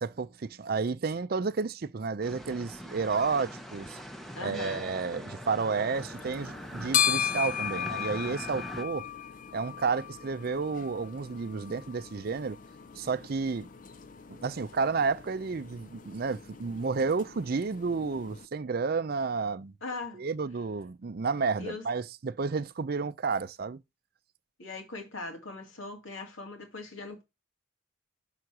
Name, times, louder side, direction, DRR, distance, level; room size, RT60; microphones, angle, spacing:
voice 1, 0.0-4.0 4.4-9.1 9.5-12.6 13.0-13.7 14.3-19.7 20.1-23.8, right 4 dB, 50° right, 0.5 m, -31 dB
sound 1, 2.2-8.8, equal, ahead, 0.7 m, -42 dB
voice 2, 4.4-4.9 19.8-20.2 21.6-21.9 24.6-27.2, left 3 dB, 75° left, 2.1 m, -40 dB
sound 2, 5.9-18.5, left 8 dB, 40° left, 0.4 m, -36 dB
6.4 x 3.9 x 5.9 m
head